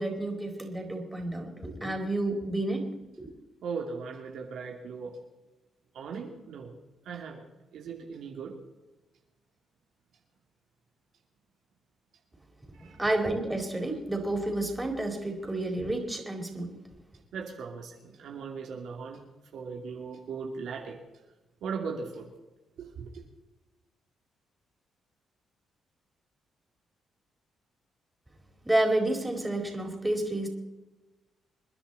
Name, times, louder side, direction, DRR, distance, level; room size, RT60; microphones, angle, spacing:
voice 1, 0.0-2.9 3.2-3.3 13.0-16.7 28.6-30.5, right 1 dB, 10° right, 4.3 m, -30 dB
voice 2, 3.6-5.2 5.9-6.7 7.0-7.4 7.7-8.5 12.7-13.0 17.3-19.2 19.5-21.0 21.6-22.3 22.8-23.2, right 5 dB, 75° right, 2.7 m, -38 dB
27.5 x 10.5 x 4.2 m
cardioid pair, 70°, 0 cm